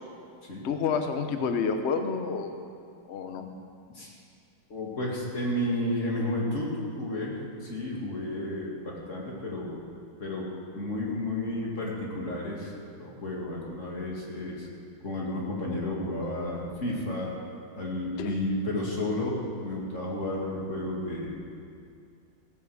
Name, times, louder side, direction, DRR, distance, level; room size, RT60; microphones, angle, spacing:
voice 1, 0.6-2.7 3.1-3.4 18.2-18.4, left 5 dB, 55° left, 6 dB, 0.8 m, -29 dB
voice 2, 4.7-6.7 7.0-9.8 10.2-14.7 15.0-17.3 17.8-21.3, left 1 dB, 35° left, -3 dB, 2.5 m, -32 dB
16.5 x 8.5 x 6.3 m, 2.3 s
omnidirectional pair, 2.2 m